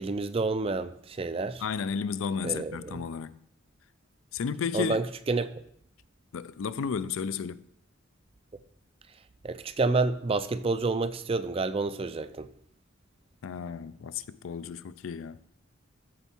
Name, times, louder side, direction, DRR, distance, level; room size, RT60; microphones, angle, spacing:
voice 1, 0.0-1.6 2.4-3.0 4.7-5.5 9.4-12.5, right 3 dB, 30° right, 0.4 m, -29 dB
voice 2, 1.6-3.4 4.3-5.0 6.3-7.6 13.4-15.6, left 6 dB, 85° left, 0.4 m, -33 dB
13.5 x 4.5 x 4.4 m
head